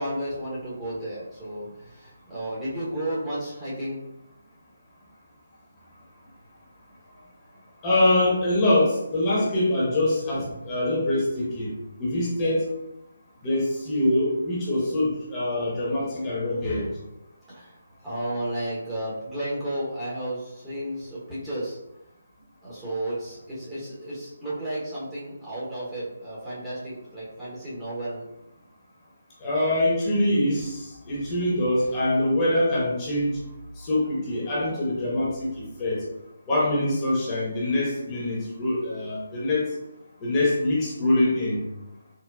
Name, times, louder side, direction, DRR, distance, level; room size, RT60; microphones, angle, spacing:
voice 1, 0.0-4.0 7.1-7.3 17.5-17.8 18.0-21.8 22.6-28.2, right 1 dB, 10° right, -11 dB, 0.8 m, -33 dB
voice 2, 7.8-11.7 12.0-12.6 13.4-16.8 29.4-33.3 33.8-36.0 36.5-39.6 40.2-41.6, left 1 dB, 20° left, -7 dB, 0.9 m, -24 dB
3.9 x 2.1 x 2.3 m, 0.89 s
figure-of-eight pair, 145°, 0 cm